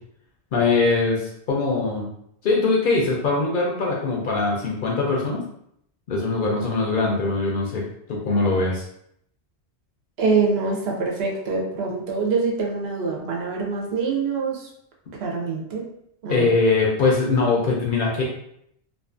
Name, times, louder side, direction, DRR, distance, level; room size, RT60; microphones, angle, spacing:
voice 1, 0.5-2.1 2.4-5.4 6.1-7.8 8.1-8.8 16.3-18.2, left 3 dB, 60° left, -2 dB, 0.6 m, -22 dB
voice 2, 10.2-14.7 15.2-15.9 16.2-16.5, right 4 dB, 70° right, -1 dB, 0.8 m, -24 dB
2.4 x 2.4 x 2.4 m, 0.73 s
omnidirectional pair, 1.1 m